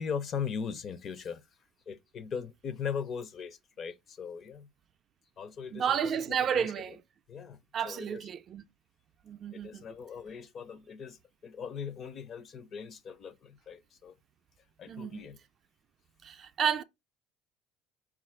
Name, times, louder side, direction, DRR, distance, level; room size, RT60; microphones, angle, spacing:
voice 1, 0.0-1.4 1.9-4.7 5.4-6.7 7.3-7.6 7.8-8.2 9.5-14.2 14.8-15.4, left 6 dB, 40° left, 0.5 m, -39 dB
voice 2, 5.7-7.0 7.7-8.6 9.2-9.8 14.9-15.3 16.2-16.8, right 8 dB, 40° right, 0.4 m, -31 dB
4.3 x 2.4 x 4.3 m
cardioid pair, 130°, 0 cm